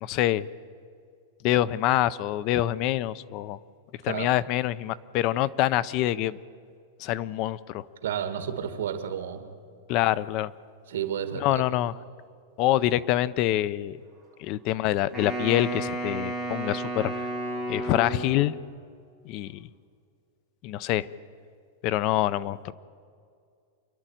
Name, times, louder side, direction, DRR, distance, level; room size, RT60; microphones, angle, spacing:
voice 1, 0.0-0.5 1.4-3.6 4.0-6.4 7.0-7.8 9.9-10.5 11.3-11.9 12.6-14.0 14.4-17.3 17.7-18.5 19.3-19.7 20.6-21.1 21.8-22.7, left 14 dB, 30° left, 18 dB, 0.5 m, -26 dB
voice 2, 8.0-9.5 10.9-11.6, right 9 dB, 80° right, 8 dB, 2.1 m, -31 dB
Wind instrument woodwind instrument, 15.1-18.6, right 2 dB, 10° left, 6.5 m, -32 dB
27.5 x 11.0 x 9.0 m, 2.3 s
supercardioid pair, 175°, 0 cm